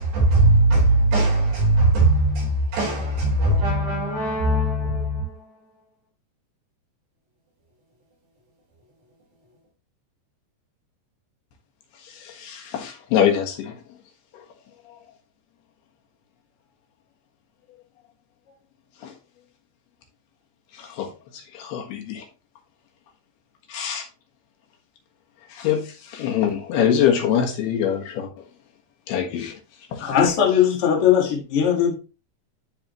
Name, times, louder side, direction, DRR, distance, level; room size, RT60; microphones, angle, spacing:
voice 1, 0.0-5.4, right 2 dB, 75° right, 6.9 m, -20 dB
voice 2, 12.1-13.8 19.0-19.1 20.7-21.1 21.3-22.2 23.7-24.0 25.5-25.8 26.1-28.3 29.1-29.6 29.9-30.1, left 9 dB, 70° left, 3.3 m, -24 dB
voice 3, 30.0-31.9, left 8 dB, 45° left, 2.0 m, -19 dB
12.5 x 4.4 x 3.0 m
omnidirectional pair, 4.8 m